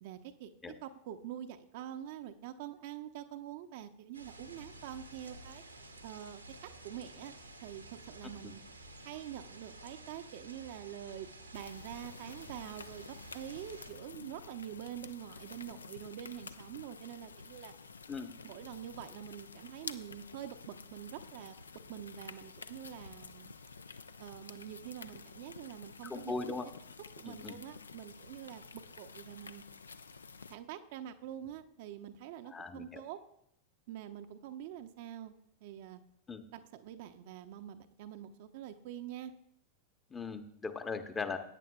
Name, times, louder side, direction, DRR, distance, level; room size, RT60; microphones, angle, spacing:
voice 1, 0.0-0.5 0.8-5.6 6.0-7.3 7.6-8.6 9.0-11.3 11.5-17.7 18.4-21.5 21.9-23.5 24.2-26.6 27.2-29.6 30.5-33.2 33.9-35.3 35.6-36.0 36.5-39.3, right 11 dB, 50° right, 8 dB, 0.6 m, -46 dB
sound 1, 4.1-13.9, right 2 dB, 85° right, 1.1 m, -52 dB
sound 2, 11.5-30.6, left 4 dB, 75° left, 0.4 m, -50 dB
voice 2, 26.0-26.7 27.3-27.6 32.5-33.0 36.3-36.4 40.1-41.4, left 4 dB, 15° left, 8 dB, 0.8 m, -39 dB
16.5 x 9.1 x 2.3 m, 0.73 s
figure-of-eight pair, 90°, 0 cm